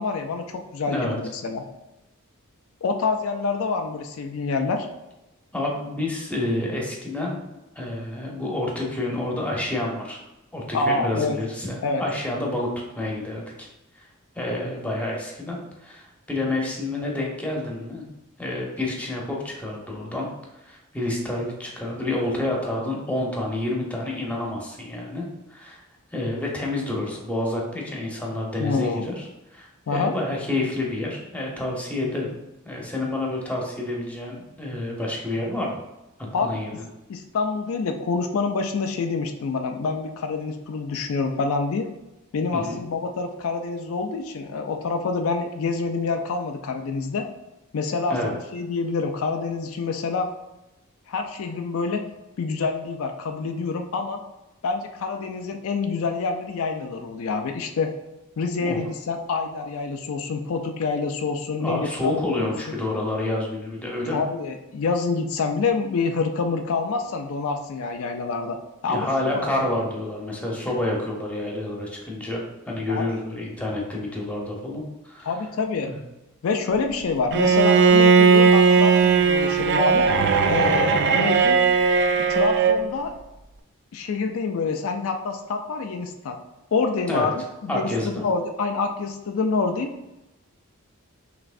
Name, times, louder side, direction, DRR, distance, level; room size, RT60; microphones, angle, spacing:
voice 1, 0.0-1.6 2.8-4.9 10.7-11.4 11.8-12.0 28.6-29.1 29.9-30.1 36.3-36.6 37.1-41.9 42.3-47.3 47.7-50.3 51.1-52.0 52.4-54.2 54.6-57.9 58.4-62.5 64.1-68.6 68.8-69.5 72.9-73.0 75.2-75.9 76.4-80.1 80.5-81.7 82.3-83.1 83.9-86.4 86.7-87.3 87.6-89.9, left 4 dB, 65° left, 5 dB, 0.4 m, -27 dB
voice 2, 0.9-1.2 5.5-7.4 7.8-10.2 10.5-12.7 13.0-13.7 14.0-14.1 14.3-18.0 18.4-20.3 20.6-25.8 26.1-32.3 32.6-35.8 36.2-36.8 42.5-42.8 48.1-48.3 58.6-58.8 61.5-64.2 68.9-75.3 75.8-76.0 87.1-87.3 87.7-88.2, left 1 dB, 5° left, -2 dB, 0.9 m, -29 dB
Bowed string instrument, 77.3-82.8, right 5 dB, 55° right, 0.4 m, -17 dB
5.8 x 3.1 x 2.5 m, 0.95 s
head